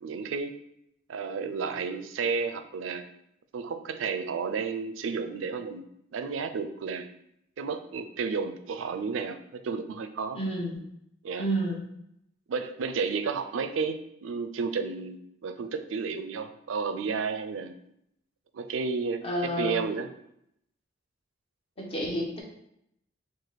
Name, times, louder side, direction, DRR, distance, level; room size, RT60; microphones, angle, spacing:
voice 1, 0.0-0.5 1.1-3.0 3.5-5.8 6.1-7.1 7.6-10.4 11.2-11.5 12.5-17.7 18.5-20.1, right 5 dB, 85° right, 9 dB, 0.4 m, -32 dB
voice 2, 10.3-10.8 11.4-11.8 19.2-19.8 21.8-22.4, right 1 dB, 30° left, -3 dB, 1.0 m, -30 dB
4.6 x 2.4 x 3.9 m, 0.77 s
head